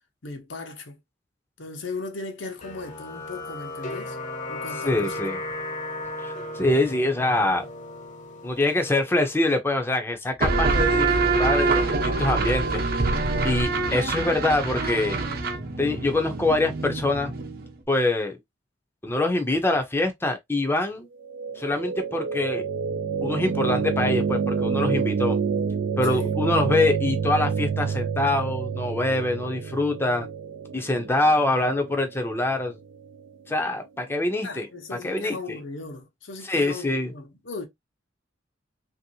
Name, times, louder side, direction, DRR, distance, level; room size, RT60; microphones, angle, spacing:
voice 1, 0.2-1.0 1.6-4.2 4.5-5.2 26.1-26.4 34.4-37.7, left 3 dB, 80° left, 0.9 m, -37 dB
sound 1, 2.6-9.5, left 2 dB, 40° left, 0.8 m, -36 dB
voice 2, 4.9-5.4 6.2-7.7 8.4-12.8 13.4-15.2 15.8-17.3 17.9-18.4 19.0-21.1 21.6-22.6 23.2-25.4 26.0-30.3 30.7-32.8 33.5-34.7 35.0-35.6 36.4-37.1, left 2 dB, 15° left, 0.5 m, -24 dB
sound 2, 10.4-17.8, right 3 dB, 55° right, 0.8 m, -25 dB
sound 3, 21.2-33.3, right 6 dB, 80° right, 0.4 m, -28 dB
3.0 x 2.7 x 2.7 m
head